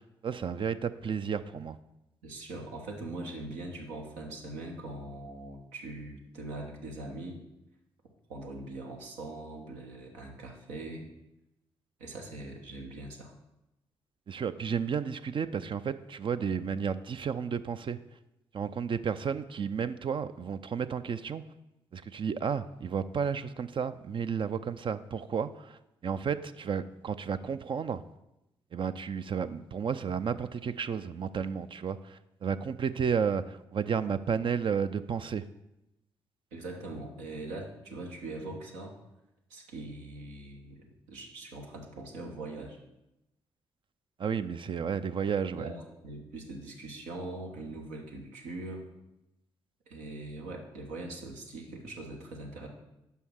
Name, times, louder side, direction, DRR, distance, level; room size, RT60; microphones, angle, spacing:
voice 1, 0.0-1.8 14.3-18.0 18.5-21.4 21.9-28.0 28.7-35.4 44.2-45.7, right 6 dB, 45° right, 12 dB, 0.4 m, -32 dB
voice 2, 2.2-7.4 8.3-11.1 12.0-13.3 36.5-39.0 39.5-42.8 45.5-48.9 49.9-52.7, right 2 dB, 85° right, 1 dB, 1.2 m, -42 dB
5.6 x 5.4 x 6.3 m, 0.91 s
hypercardioid pair, 45°, 12 cm